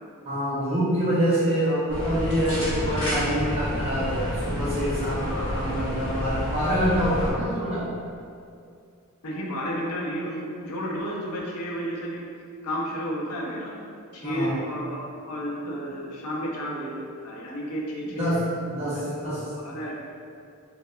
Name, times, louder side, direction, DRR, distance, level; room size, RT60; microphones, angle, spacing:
voice 1, 0.2-7.8 14.2-14.6 18.2-19.4, equal, 25° right, -9 dB, 0.4 m, -26 dB
sound 1, 1.9-7.3, equal, 60° left, 1.0 m, -29 dB
voice 2, 5.2-5.7 7.1-7.4 9.2-12.3 12.6-13.7 14.1-18.3 18.9-20.0, equal, 75° left, -3 dB, 0.5 m, -32 dB
2.8 x 2.1 x 2.2 m, 2.4 s
head